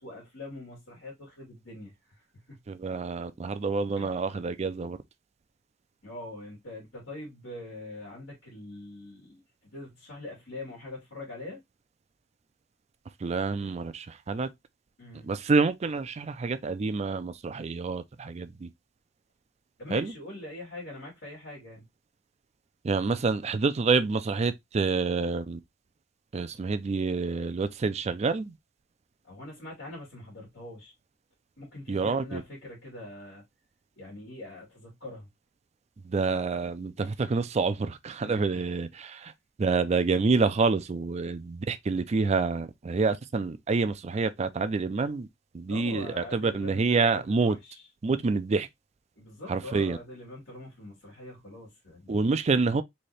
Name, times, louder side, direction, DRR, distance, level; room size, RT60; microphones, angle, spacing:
voice 1, 0.0-2.2 2.5-2.6 4.0-4.2 6.0-9.4 9.7-11.6 15.0-15.3 19.8-21.9 29.3-30.9 31.6-33.4 34.0-35.3 37.2-37.4 38.2-38.6 45.7-47.9 49.2-52.3, left 2 dB, 85° left, 2.2 m, -43 dB
voice 2, 2.7-5.0 13.2-14.5 15.2-18.7 19.9-20.1 22.8-25.6 26.3-28.5 31.9-32.4 36.1-39.3 39.6-45.3 45.5-47.6 48.0-48.7 49.5-50.0 52.1-52.8, right 4 dB, 35° right, 0.4 m, -27 dB
4.1 x 2.8 x 3.2 m
head